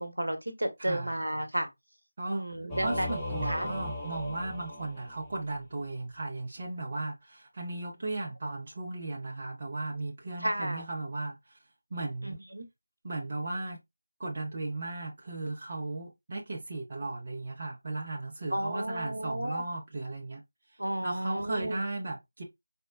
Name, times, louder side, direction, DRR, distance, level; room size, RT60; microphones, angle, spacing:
voice 1, 0.0-1.7 2.3-3.2 3.4-3.7 10.4-10.8 12.2-12.7 18.5-19.6 20.8-21.8, right 1 dB, 70° right, 0.9 m, -32 dB
voice 2, 0.8-1.1 2.2-2.5 2.8-11.6 11.9-12.5 13.0-13.8 14.2-20.4 20.7-22.4, right 2 dB, 30° right, 0.6 m, -36 dB
Singing / Musical instrument, 2.7-5.6, left 1 dB, 5° left, 0.7 m, -37 dB
4.3 x 2.0 x 2.4 m
figure-of-eight pair, 165°, 0 cm